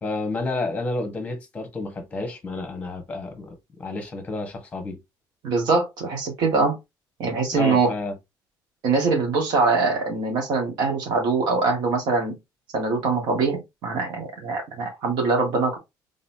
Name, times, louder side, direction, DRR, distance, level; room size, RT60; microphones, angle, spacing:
voice 1, 0.0-5.0 7.5-8.1, left 3 dB, 15° left, 1.3 m, -30 dB
voice 2, 5.4-6.8 7.2-7.9 8.8-12.3 12.7-15.8, right 4 dB, 65° right, 1.8 m, -23 dB
4.1 x 3.6 x 2.8 m
cardioid pair, 155°, 8 cm